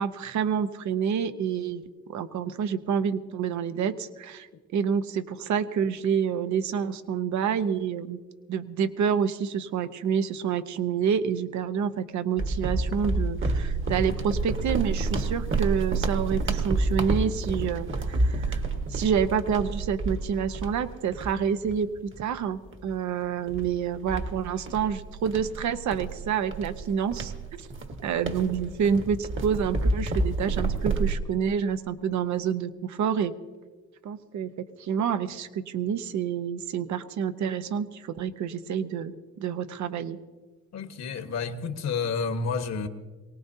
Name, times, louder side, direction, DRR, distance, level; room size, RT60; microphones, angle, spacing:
voice 1, 0.0-4.5 4.7-8.2 8.5-18.6 18.9-27.7 28.0-33.3 34.0-39.1 39.4-40.2, right 7 dB, 70° right, 11 dB, 0.9 m, -28 dB
sound 1, 12.4-22.2 22.7-22.9 23.5-31.1, right 3 dB, 40° right, 1.5 m, -29 dB
voice 2, 40.7-42.9, left 5 dB, 60° left, 7 dB, 1.3 m, -30 dB
23.0 x 18.5 x 2.8 m, 1.3 s
cardioid pair, 90°, 30 cm